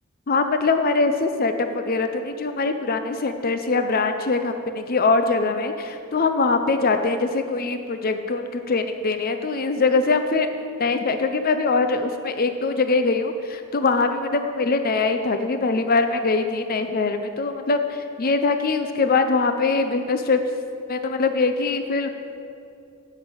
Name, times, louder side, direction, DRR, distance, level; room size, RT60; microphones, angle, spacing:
voice 1, 0.3-10.5 10.8-20.4 20.9-22.1, left 3 dB, 45° left, 8 dB, 0.6 m, -22 dB
9.7 x 8.1 x 7.9 m, 2.6 s
head